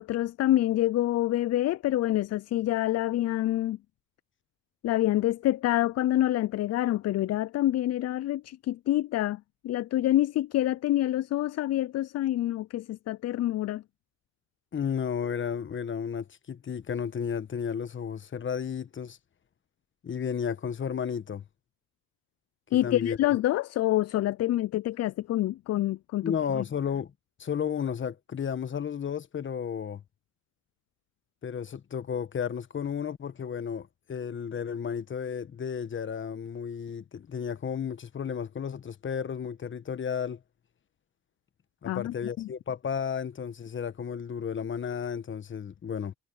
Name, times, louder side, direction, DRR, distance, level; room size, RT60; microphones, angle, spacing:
voice 1, 0.0-3.8 4.8-13.8 22.7-26.2 26.6-26.7 41.9-42.5, left 14 dB, 55° left, 0.5 m, -27 dB
voice 2, 14.7-19.2 20.0-21.4 22.7-23.2 26.2-27.1 27.4-30.0 31.4-40.4 41.8-46.1, left 7 dB, 40° left, 1.2 m, -33 dB
cardioid pair, 90°, 30 cm